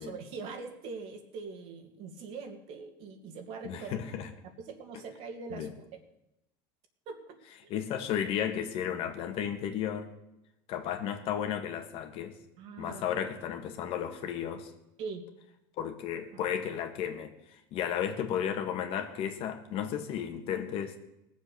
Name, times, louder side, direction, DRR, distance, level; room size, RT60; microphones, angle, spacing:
voice 1, 0.0-4.0 4.6-6.0 7.1-7.4 12.6-13.1 15.0-15.2 16.3-16.4, right 4 dB, 60° right, 5 dB, 2.4 m, -42 dB
voice 2, 3.6-4.3 5.5-5.7 7.7-10.1 10.7-12.4 12.8-14.7 15.8-17.3 17.7-21.0, left 9 dB, 55° left, 6 dB, 1.7 m, -33 dB
19.0 x 7.3 x 6.9 m, 0.89 s
supercardioid pair, 115°, 12 cm